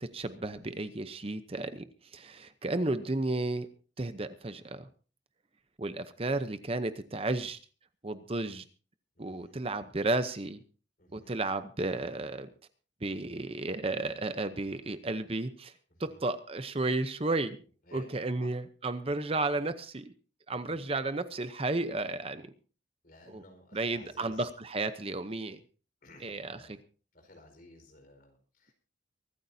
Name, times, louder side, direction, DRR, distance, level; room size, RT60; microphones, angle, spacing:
voice 1, 0.0-1.8 2.1-3.7 4.0-4.9 5.8-7.6 8.0-8.6 9.2-10.6 11.1-12.5 13.0-15.7 16.0-17.6 17.9-20.1 20.5-22.5 23.3-23.4 23.7-25.6 26.2-26.8, right 2 dB, 30° right, 11 dB, 0.7 m, -33 dB
voice 2, 9.1-9.6 11.0-11.3 15.9-16.2 17.9-18.1 18.4-18.5 20.5-20.9 23.0-24.5 26.0-26.8 27.1-28.7, left 1 dB, 50° left, 4 dB, 4.7 m, -55 dB
24.0 x 13.5 x 2.7 m, 0.37 s
head